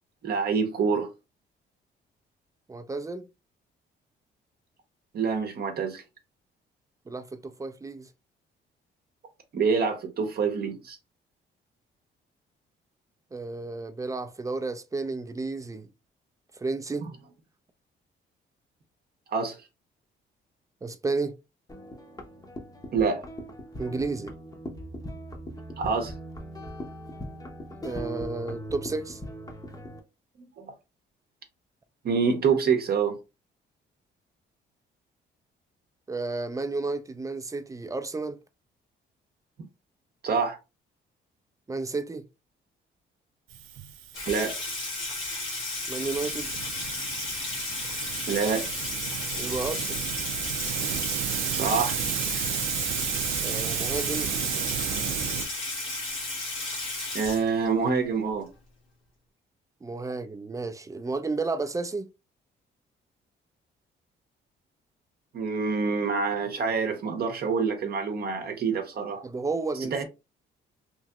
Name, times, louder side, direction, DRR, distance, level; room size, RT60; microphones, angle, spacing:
voice 1, 0.2-1.1 5.1-6.0 9.5-11.0 17.0-17.1 19.3-19.6 22.9-23.2 25.8-26.1 30.4-30.7 32.0-33.2 40.2-40.6 44.3-44.6 48.3-48.7 51.5-52.0 52.3-52.5 57.1-58.5 65.3-69.2 69.9-70.0, right 5 dB, 50° right, 0.7 m, -26 dB
voice 2, 2.7-3.3 7.1-8.1 13.3-15.9 16.6-17.1 20.8-21.4 23.8-24.3 27.8-29.2 36.1-38.4 41.7-42.2 45.9-46.5 49.4-50.0 53.4-54.3 59.8-62.1 69.2-70.0, right 3 dB, 15° right, 0.4 m, -32 dB
sound 1, 21.7-30.0, equal, 20° left, 0.7 m, -40 dB
Hiss, 43.5-55.4, right 10 dB, 85° right, 0.4 m, -33 dB
Water tap faucet / Sink (filling or washing), 44.1-57.9, left 2 dB, 85° left, 1.3 m, -33 dB
3.0 x 2.6 x 2.3 m
cardioid pair, 90°, 20 cm